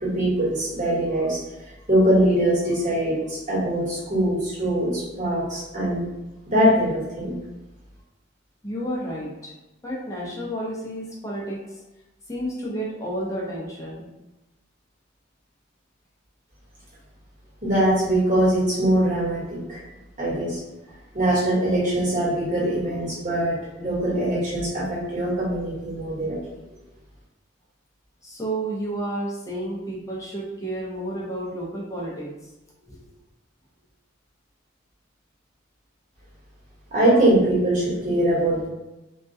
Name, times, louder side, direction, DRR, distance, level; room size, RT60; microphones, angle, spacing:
voice 1, 0.0-1.4 1.9-6.0 6.5-7.3 17.6-19.4 19.7-19.8 20.2-20.6 21.1-26.4 36.9-38.7, right 1 dB, 40° right, -8 dB, 1.1 m, -22 dB
voice 2, 8.6-9.5 9.8-11.8 12.3-14.1 20.9-21.0 28.2-32.3 32.9-33.0, right 1 dB, 15° left, -4 dB, 0.5 m, -31 dB
2.3 x 2.1 x 2.6 m, 1.0 s
head